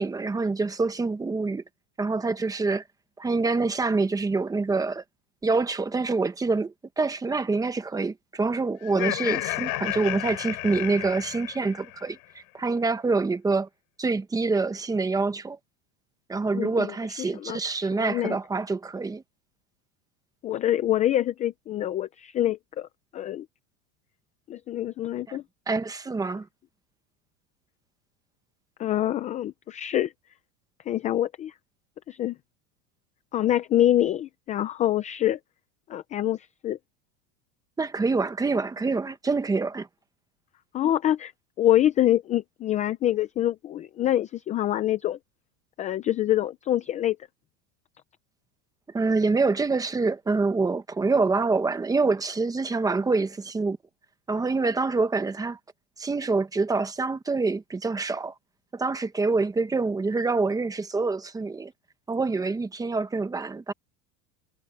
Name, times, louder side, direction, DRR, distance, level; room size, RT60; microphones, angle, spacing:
voice 1, 0.0-1.6 2.0-2.8 3.2-5.0 5.4-13.7 14.0-15.6 16.3-19.2 25.3-25.4 25.7-26.5 37.8-39.9 48.9-53.8 54.3-55.6 56.0-58.3 58.7-61.7 62.1-63.7, right 3 dB, 10° right, 0.9 m, -26 dB
Laughter, 8.8-12.1, left 28 dB, 50° left, 5.5 m, -32 dB
voice 2, 16.5-16.9 17.2-17.6 17.9-18.4 20.4-22.9 23.1-23.5 24.5-25.4 28.8-30.1 30.9-31.5 32.1-32.4 33.3-35.4 35.9-36.8 40.7-41.3 41.6-45.2 45.8-47.2, left 12 dB, 20° left, 0.4 m, -25 dB
supercardioid pair, 155°, 43 cm